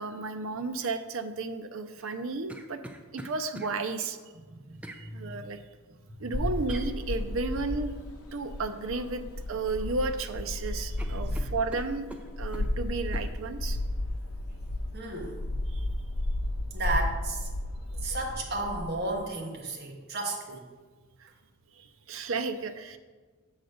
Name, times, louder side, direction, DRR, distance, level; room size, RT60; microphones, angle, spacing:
voice 1, 0.0-2.8 3.1-4.2 4.9-5.6 6.2-7.9 8.3-12.1 12.4-13.8 15.7-15.8 17.9-18.0 20.5-20.6 21.2-21.3 21.7-23.0, right 3 dB, 65° right, 8 dB, 0.6 m, -33 dB
sound 1, 2.0-3.7 4.8-5.0 6.7-6.9 8.9-9.2 9.5-10.2 10.5-10.6 11.0-12.7 13.1-13.3, right 1 dB, 5° right, 0.4 m, -45 dB
voice 2, 4.5-5.4 6.2-6.5 11.2-11.4 14.9-15.4 16.7-17.5 18.0-20.6, right 2 dB, 45° right, -1 dB, 1.2 m, -34 dB
sound 2, 6.3-19.3, left 1 dB, 80° left, 0.7 m, -33 dB
7.7 x 4.0 x 6.4 m, 1.4 s
head